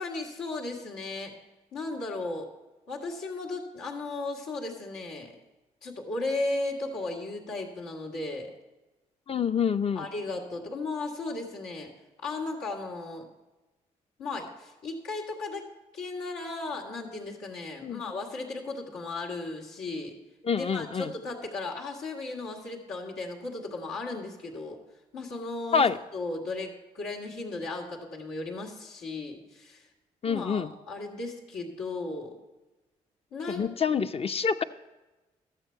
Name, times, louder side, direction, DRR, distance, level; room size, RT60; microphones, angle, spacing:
voice 1, 0.0-1.3 1.7-2.5 2.9-5.4 5.8-8.5 9.9-11.9 12.2-13.3 14.2-20.2 20.5-24.8 25.1-29.9 30.3-32.4 33.3-33.7, left 2 dB, 90° left, -4 dB, 1.7 m, -35 dB
voice 2, 9.3-10.1 17.8-18.0 20.4-21.1 25.7-26.0 30.2-30.7 33.5-34.6, left 6 dB, 35° left, 10 dB, 0.5 m, -27 dB
12.5 x 7.5 x 4.4 m, 1.1 s
hypercardioid pair, 50°, 17 cm